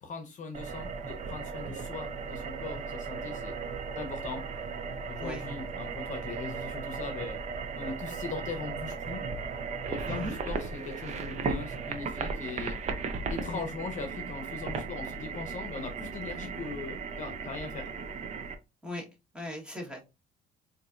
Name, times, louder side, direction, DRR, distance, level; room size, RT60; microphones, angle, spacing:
voice 1, 0.0-3.6 4.0-4.4 5.0-7.4 7.7-9.3 9.9-12.8 13.3-17.9, left 4 dB, 50° left, 0.8 m, -40 dB
sound 1, 0.5-18.6, right 5 dB, 45° right, 0.7 m, -36 dB
voice 2, 19.3-20.0, left 1 dB, 5° right, 1.4 m, -37 dB
4.0 x 2.7 x 2.5 m
cardioid pair, 110°, 17 cm